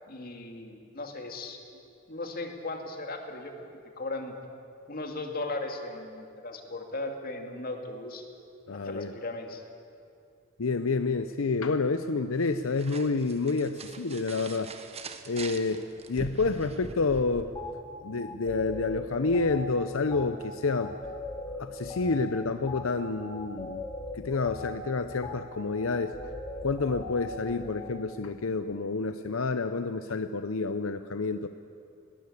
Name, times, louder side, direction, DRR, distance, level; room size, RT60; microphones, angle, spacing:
voice 1, 0.1-1.8 2.1-3.7 4.0-4.3 4.9-8.3 8.8-9.6, left 2 dB, 45° left, 4 dB, 2.3 m, -37 dB
voice 2, 8.7-9.1 10.6-14.7 15.3-17.5 18.0-20.9 21.6-23.8 24.1-26.2 26.6-31.5, left 3 dB, 85° left, 10 dB, 0.7 m, -29 dB
sound 1, 12.3-17.4, right 3 dB, 30° right, 1.2 m, -43 dB
sound 2, 17.5-17.7 18.2-27.9, left 2 dB, 20° left, 3.5 m, -40 dB
20.5 x 18.5 x 8.5 m, 2.5 s
head